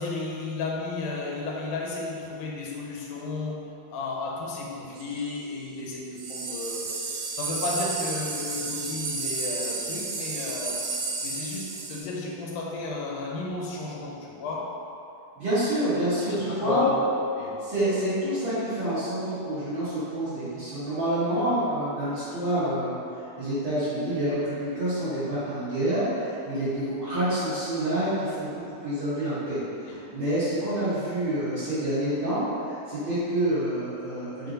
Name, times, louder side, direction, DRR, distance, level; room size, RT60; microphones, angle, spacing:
voice 1, 0.0-6.9 7.3-10.9 11.2-14.8 16.1-17.1 17.3-17.7 29.9-30.0, left 3 dB, 90° left, -2 dB, 2.2 m, -33 dB
sound 1, 5.0-5.3 6.2-12.0, right 3 dB, 80° right, 1.6 m, -32 dB
voice 2, 15.4-16.8 17.6-28.5 28.8-34.5, right 1 dB, 50° right, -15 dB, 1.6 m, -28 dB
4.9 x 2.5 x 3.9 m, 2.7 s
omnidirectional pair, 3.5 m